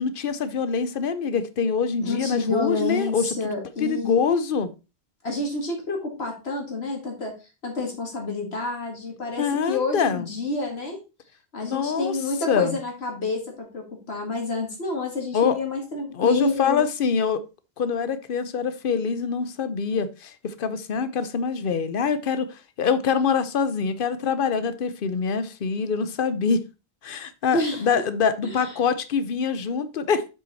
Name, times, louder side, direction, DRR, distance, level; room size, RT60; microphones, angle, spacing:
voice 1, 0.0-4.7 9.4-10.3 11.6-12.2 12.5-12.8 15.3-15.6 16.1-17.4 17.8-26.6 27.0-30.2, left 6 dB, 60° left, 0.9 m, -25 dB
voice 2, 2.0-4.2 5.2-7.3 7.6-11.0 11.5-16.8 27.5-27.9 28.4-28.7, left 3 dB, 80° left, 2.3 m, -28 dB
7.6 x 5.8 x 4.0 m
omnidirectional pair, 1.1 m